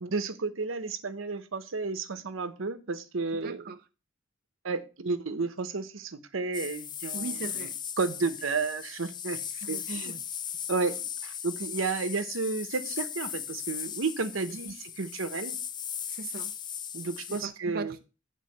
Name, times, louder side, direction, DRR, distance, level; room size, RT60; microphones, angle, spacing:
voice 1, 0.0-3.6 4.6-7.7 8.0-10.1 10.7-15.6 16.9-17.9, right 4 dB, 80° right, 0.8 m, -32 dB
voice 2, 3.3-3.8 7.1-7.8 9.6-10.2 14.5-14.7 16.1-16.6 17.3-18.0, right 4 dB, 50° right, 0.5 m, -39 dB
sound 1, 6.5-17.5, left 8 dB, 20° left, 0.3 m, -38 dB
9.5 x 3.8 x 6.4 m
head